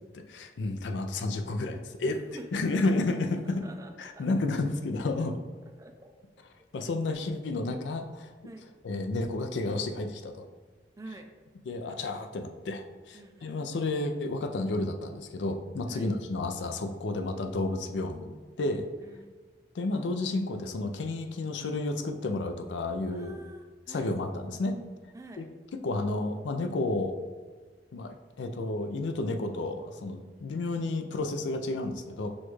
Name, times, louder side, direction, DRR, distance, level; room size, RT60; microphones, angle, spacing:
voice 1, 0.1-2.2 2.5-3.6 4.0-5.4 6.7-8.3 8.8-10.4 11.7-18.8 19.7-23.4 23.9-24.7 25.4-25.5 25.7-27.2 27.9-32.3, left 2 dB, 90° left, 6 dB, 0.4 m, -31 dB
voice 2, 2.0-2.6 3.4-4.3 5.6-6.1 8.4-8.7 11.0-11.3 13.1-13.6 15.9-16.1 19.0-19.4 23.1-24.1 25.1-25.4, right 2 dB, 20° right, 5 dB, 0.3 m, -47 dB
6.2 x 2.3 x 3.1 m, 1.4 s
head